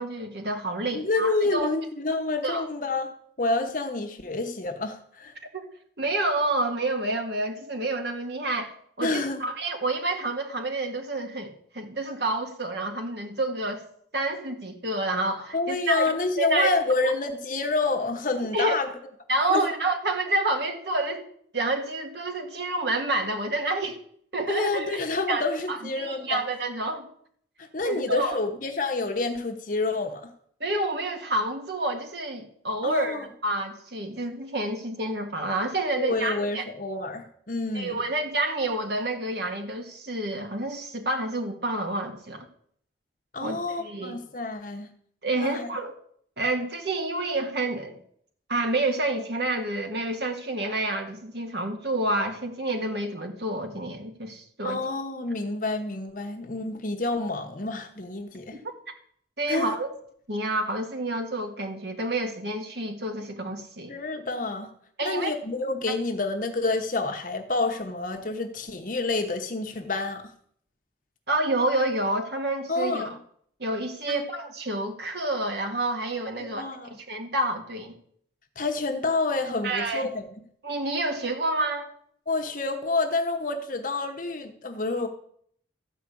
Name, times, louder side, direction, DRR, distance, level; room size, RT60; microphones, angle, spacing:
voice 1, 0.0-1.7 2.4-2.6 5.5-5.7 6.0-8.7 9.0-13.8 14.1-16.1 16.4-16.7 17.0-17.1 18.5-18.8 19.3-21.2 21.5-24.0 24.3-25.0 25.3-25.4 25.7-27.1 27.8-28.4 30.6-36.6 37.7-42.5 43.4-44.2 45.2-45.9 46.4-48.0 48.5-54.8 59.4-59.9 60.3-63.9 65.0-65.3 71.3-73.2 73.6-76.7 77.1-78.0 79.6-80.1 80.6-81.9, right 2 dB, 60° right, 4 dB, 1.9 m, -28 dB
voice 2, 0.9-3.1 3.4-5.3 9.0-9.4 15.5-18.9 19.5-19.6 24.5-26.4 27.6-30.3 32.8-33.2 36.0-38.0 43.3-44.9 45.3-45.7 54.6-58.6 59.5-59.8 63.9-64.7 65.0-70.2 72.7-73.1 74.1-74.2 76.4-76.9 78.6-80.2 82.3-85.1, left 3 dB, 45° left, 4 dB, 1.1 m, -28 dB
13.5 x 5.1 x 8.5 m, 0.64 s
head